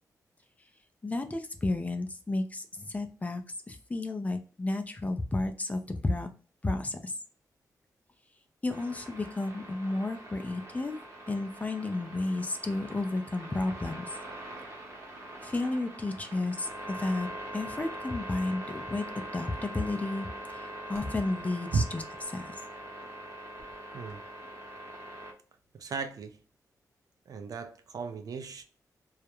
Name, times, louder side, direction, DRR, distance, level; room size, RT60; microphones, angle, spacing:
voice 1, 1.0-3.4 3.7-6.3 6.6-7.1 8.6-10.9 11.3-14.2 15.4-17.3 17.5-19.1 19.3-22.0 22.3-22.6, left 2 dB, 20° left, 0.4 m, -32 dB
sound 1, 8.7-25.3, right 1 dB, 45° right, 0.9 m, -43 dB
voice 2, 25.7-26.4 27.3-28.6, right 4 dB, 60° right, 0.4 m, -34 dB
2.3 x 2.0 x 2.9 m
cardioid pair, 90°, 7 cm